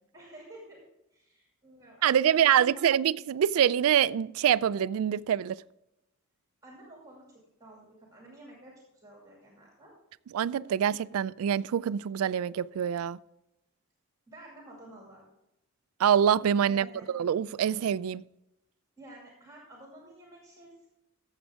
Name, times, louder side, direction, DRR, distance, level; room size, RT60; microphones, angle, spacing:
voice 1, 0.1-0.8 1.1-2.6 6.6-9.9 14.3-15.2 16.7-17.1 19.0-20.9, right 1 dB, 15° right, 2.2 m, -51 dB
voice 2, 2.0-5.6 10.3-13.2 16.0-18.2, right 9 dB, 80° right, 0.3 m, -25 dB
13.5 x 7.3 x 3.6 m
head